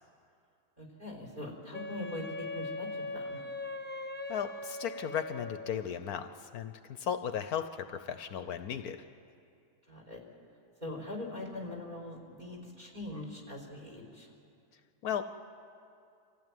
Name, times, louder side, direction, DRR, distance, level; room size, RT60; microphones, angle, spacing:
voice 1, 0.8-3.4 9.9-10.2 10.8-14.3, left 1 dB, 25° right, 1 dB, 4.0 m, -42 dB
Wind instrument woodwind instrument, 1.7-5.8, left 2 dB, 10° left, 0.6 m, -40 dB
voice 2, 4.3-9.0 15.0-15.2, left 8 dB, 70° left, 10 dB, 1.2 m, -36 dB
25.0 x 15.5 x 9.2 m, 2.5 s
omnidirectional pair, 1.7 m